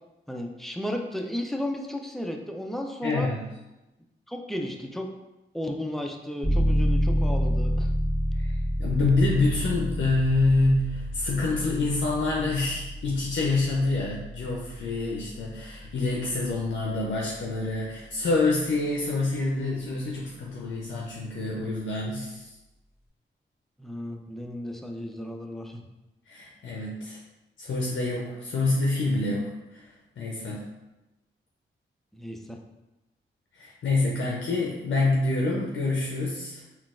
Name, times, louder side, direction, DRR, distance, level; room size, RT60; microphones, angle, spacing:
voice 1, 0.3-3.3 4.3-5.1 5.5-7.9 23.8-25.8 32.1-32.6, left 1 dB, ahead, 3 dB, 0.4 m, -34 dB
voice 2, 3.0-3.4 8.4-22.5 26.3-27.2 27.6-29.9 30.2-30.7 33.5-36.6, left 2 dB, 65° left, -3 dB, 0.5 m, -27 dB
sound 1, 6.4-17.0, equal, 15° right, 1.3 m, -29 dB
3.8 x 2.3 x 2.4 m, 1.0 s
cardioid pair, 45°, 21 cm